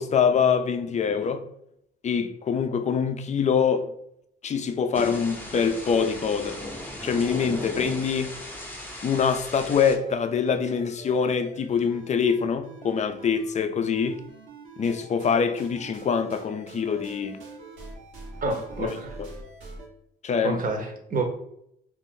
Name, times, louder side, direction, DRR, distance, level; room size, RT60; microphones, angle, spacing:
voice 1, 0.0-1.5 2.0-3.9 4.4-6.6 7.0-8.3 9.0-14.2 14.8-17.4 18.8-19.3 20.2-20.6, left 6 dB, 35° left, 0.4 m, -24 dB
Thunder / Rain, 4.9-10.0, left 1 dB, 10° left, 0.7 m, -37 dB
sound 1, 9.1-13.6 13.9-19.9, right 2 dB, 85° right, 1.1 m, -45 dB
voice 2, 18.4-19.1 20.4-21.3, right 3 dB, 45° right, 0.8 m, -28 dB
2.5 x 2.5 x 3.7 m
cardioid pair, 90°, 20 cm